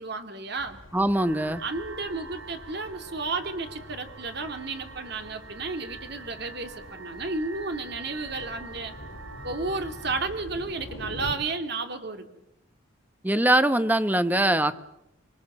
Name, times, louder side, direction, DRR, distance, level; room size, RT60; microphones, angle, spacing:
voice 1, 0.0-0.8 1.6-8.9 9.4-12.3, right 3 dB, 55° right, 7 dB, 2.6 m, -32 dB
sound 1, 0.6-11.3, left 1 dB, 80° left, 4.3 m, -45 dB
voice 2, 0.9-1.6 13.2-14.9, right 1 dB, 10° right, 12 dB, 0.9 m, -22 dB
sound 2, 1.1-10.3, right 4 dB, 80° right, 4.0 m, -45 dB
25.5 x 22.5 x 7.4 m, 0.85 s
head